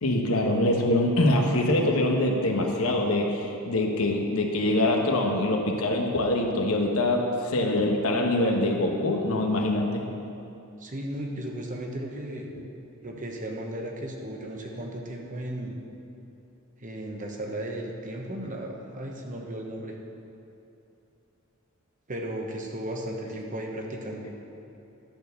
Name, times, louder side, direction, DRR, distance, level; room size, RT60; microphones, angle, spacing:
voice 1, 0.0-10.0 14.7-14.8, left 1 dB, 80° left, 2 dB, 1.1 m, -24 dB
voice 2, 10.8-12.5 13.0-15.8 16.8-19.9 22.1-24.3, right 1 dB, 40° right, 1 dB, 1.1 m, -35 dB
11.5 x 4.5 x 6.8 m, 2.8 s
head